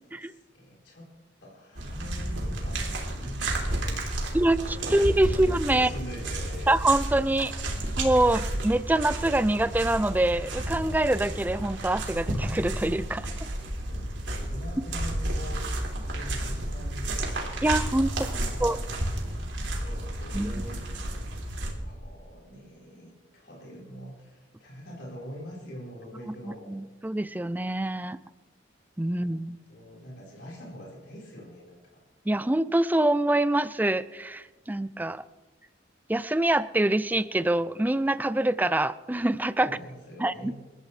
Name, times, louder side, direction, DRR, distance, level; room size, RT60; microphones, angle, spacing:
voice 1, 0.0-1.1 1.4-4.3 4.8-5.5 5.7-6.7 13.3-15.7 16.0-17.5 18.2-19.1 19.7-26.7 29.1-32.0 39.6-40.5, equal, 65° left, -4 dB, 4.5 m, -44 dB
sound 1, 1.7-21.7, right 1 dB, 80° right, 3.4 m, -32 dB
voice 2, 4.3-5.9 6.7-7.5 8.0-13.3 17.6-18.8 20.3-20.6 26.7-28.2 29.0-29.6 32.3-35.2 36.1-39.7 40.2-40.5, right 1 dB, 10° right, 15 dB, 0.4 m, -25 dB
27.5 x 14.0 x 3.3 m, 1.2 s
head